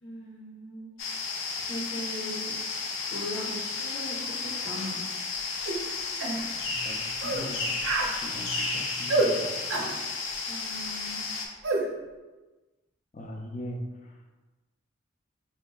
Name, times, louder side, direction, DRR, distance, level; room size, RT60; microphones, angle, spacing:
voice 1, 0.0-2.5 3.1-5.0 10.5-11.3, equal, 65° left, -6 dB, 0.9 m, -40 dB
sound 1, 1.0-11.5, left 4 dB, 90° left, 0.5 m, -33 dB
sound 2, 5.7-5.8 6.2-6.4 7.2-7.5 7.8-8.1 9.1-9.3 9.7-9.9 11.6-11.8, right 3 dB, 75° right, 0.5 m, -27 dB
voice 2, 6.6-7.8 8.2-9.9 13.1-14.2, equal, 40° left, 1 dB, 0.4 m, -41 dB
4.5 x 2.7 x 2.3 m, 1.2 s
head